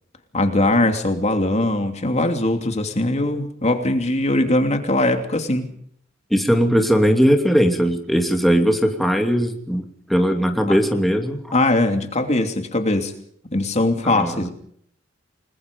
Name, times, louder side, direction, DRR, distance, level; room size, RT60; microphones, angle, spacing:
voice 1, 0.3-5.7 10.7-10.8 11.5-13.1 13.5-14.5, left 2 dB, 35° left, 6 dB, 2.9 m, -21 dB
voice 2, 6.3-11.4 14.0-14.5, equal, ahead, 3 dB, 2.7 m, -19 dB
30.0 x 21.0 x 5.4 m, 0.64 s
head